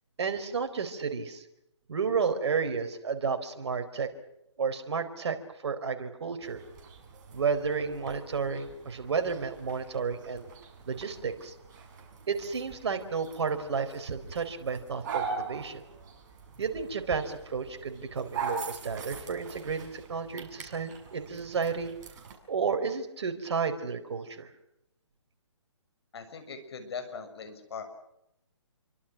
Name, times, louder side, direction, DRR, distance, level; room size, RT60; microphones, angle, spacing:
voice 1, 0.2-1.4 1.9-4.1 4.6-5.4 5.6-6.6 7.3-10.5 10.9-11.5 12.3-15.8 16.6-21.9 22.5-24.5, right 5 dB, 60° right, 7 dB, 4.4 m, -32 dB
sound 1, 6.4-22.4, right 5 dB, 35° right, 7.0 m, -42 dB
voice 2, 26.1-27.9, left 5 dB, 55° left, 8 dB, 6.6 m, -40 dB
28.5 x 24.5 x 6.1 m, 0.82 s
figure-of-eight pair, 145°, 16 cm